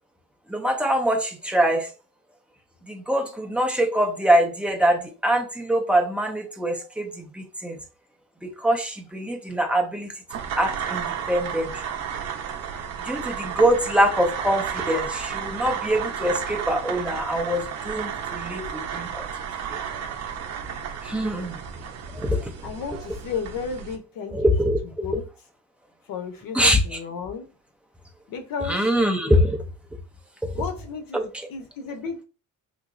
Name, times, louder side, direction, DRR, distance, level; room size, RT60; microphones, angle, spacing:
voice 1, 0.5-1.9 2.9-7.8 8.4-10.1 10.6-11.7 13.0-19.2 19.7-19.8 21.0-21.6 22.1-22.5 24.3-24.8 26.5-26.8 28.7-29.6 30.4-30.5 31.1-31.2, equal, 5° right, 0.5 m, -23 dB
sound 1, 10.3-24.0, right 8 dB, 50° right, 0.7 m, -32 dB
voice 2, 22.6-24.5 24.8-25.3 26.1-27.5 28.3-28.9 30.5-32.2, left 5 dB, 75° left, 0.9 m, -33 dB
3.6 x 2.9 x 2.5 m
cardioid pair, 155°, 33 cm